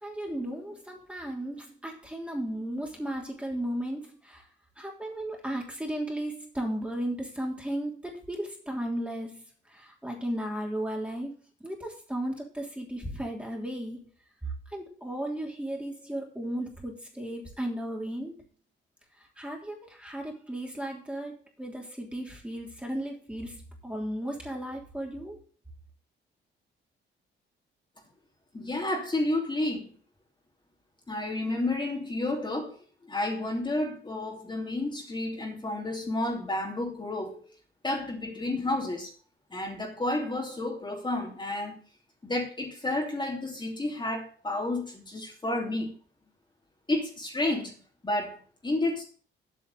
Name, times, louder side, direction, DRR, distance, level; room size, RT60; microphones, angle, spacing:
voice 1, 0.0-4.4 4.8-11.3 11.6-14.1 14.7-18.4 19.2-25.4, right 1 dB, 5° right, 0 dB, 3.2 m, -35 dB
voice 2, 28.5-29.9 31.1-32.8 33.1-37.5 37.8-39.1 39.5-41.8 42.2-45.9 46.9-47.8 48.0-49.0, left 2 dB, 25° left, 0 dB, 2.9 m, -31 dB
8.5 x 5.6 x 7.9 m, 0.41 s
cardioid pair, 90°, 20 cm